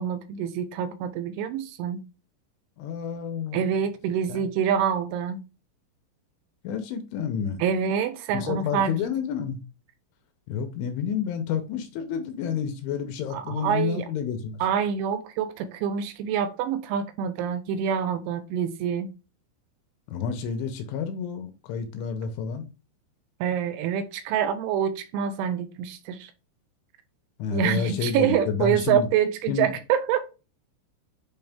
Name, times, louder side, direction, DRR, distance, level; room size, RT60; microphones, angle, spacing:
voice 1, 0.0-2.0 3.5-5.4 7.6-8.9 13.3-14.1 14.6-19.1 23.4-26.3 27.5-30.2, right 8 dB, 80° right, 3.0 m, -26 dB
voice 2, 2.8-3.7 4.3-4.4 6.6-7.6 8.3-9.6 10.5-14.6 20.1-22.7 27.4-29.1 29.5-29.7, left 7 dB, 75° left, 3.1 m, -30 dB
9.0 x 3.1 x 3.5 m
omnidirectional pair, 5.8 m